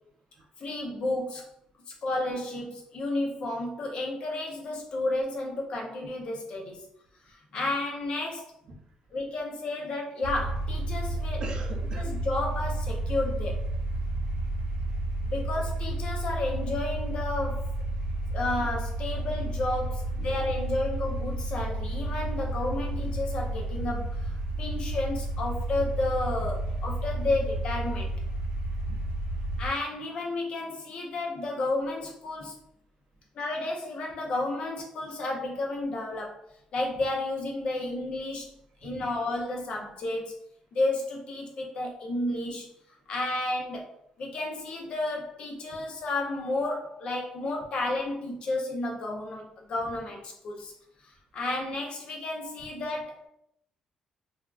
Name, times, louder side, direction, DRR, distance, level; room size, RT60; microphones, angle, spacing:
voice 1, 0.6-1.5 1.9-6.9 7.3-8.5 9.1-11.4 12.0-13.6 15.3-17.8 18.3-24.3 24.6-28.1 28.9-29.0 29.6-32.6 33.4-36.3 36.7-38.5 38.8-40.4 40.7-42.7 43.1-43.9 44.2-50.7 51.0-53.3, left 2 dB, 45° left, 0 dB, 0.5 m, -32 dB
sound 1, 10.2-29.7, right 1 dB, 90° right, 0.7 m, -31 dB
voice 2, 11.4-12.1 14.3-14.4 20.2-20.3 38.8-39.1, right 3 dB, 40° right, 2 dB, 0.5 m, -41 dB
3.4 x 2.3 x 2.2 m, 0.74 s
cardioid pair, 170°, 2 cm